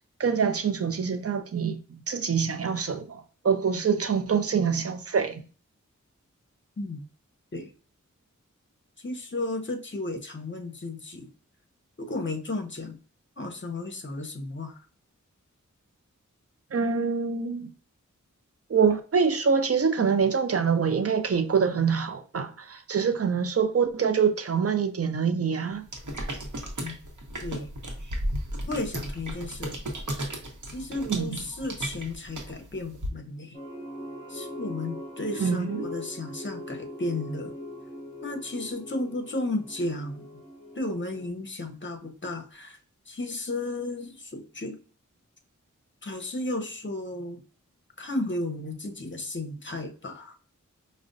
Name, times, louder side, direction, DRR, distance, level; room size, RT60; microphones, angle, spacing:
voice 1, 0.2-5.4 16.7-17.7 18.7-25.8 31.0-31.4 35.4-35.9, right 6 dB, 50° right, 0.5 m, -25 dB
voice 2, 9.0-11.3 12.0-13.0 13.4-14.8 26.8-27.0 27.4-27.7 28.7-29.7 30.7-33.6 34.3-37.5 38.2-40.2 40.8-42.8 43.1-44.8 46.0-47.4 48.0-50.3, left 2 dB, 40° left, 0.7 m, -33 dB
sound 1, 25.9-33.1, right 1 dB, 70° right, 0.9 m, -35 dB
sound 2, 33.5-41.3, left 1 dB, 20° left, 1.0 m, -41 dB
4.9 x 2.1 x 2.5 m
wide cardioid pair, 40°, 31 cm